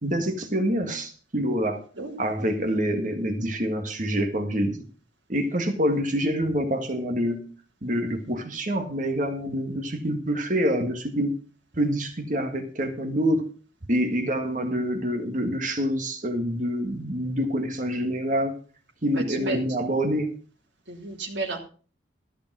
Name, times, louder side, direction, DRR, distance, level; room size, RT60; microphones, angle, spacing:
voice 1, 0.0-1.8 2.2-4.8 5.3-7.5 7.8-11.3 11.7-13.5 13.9-18.6 19.0-20.3, equal, 45° right, 6 dB, 1.7 m, -26 dB
voice 2, 19.1-19.6 20.9-21.6, right 3 dB, 70° right, -2 dB, 2.9 m, -32 dB
14.0 x 6.8 x 6.1 m, 0.39 s
head